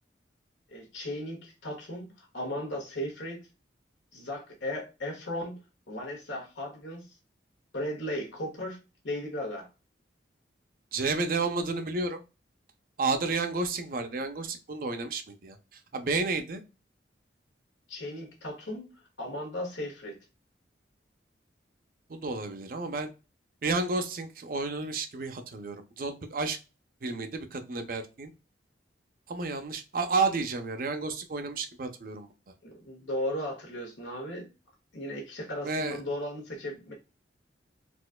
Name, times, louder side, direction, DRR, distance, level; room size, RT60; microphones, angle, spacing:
voice 1, 0.7-3.4 4.1-5.6 5.9-7.1 7.7-9.7 17.9-18.9 19.2-20.2 32.6-34.5 34.9-36.9, left 1 dB, 90° left, -1 dB, 1.5 m, -36 dB
voice 2, 10.9-12.2 13.0-15.6 15.9-16.6 22.1-23.1 23.6-26.6 27.0-28.3 29.3-32.3 35.6-36.0, right 3 dB, 50° right, 7 dB, 0.5 m, -31 dB
4.2 x 2.5 x 2.2 m, 0.29 s
head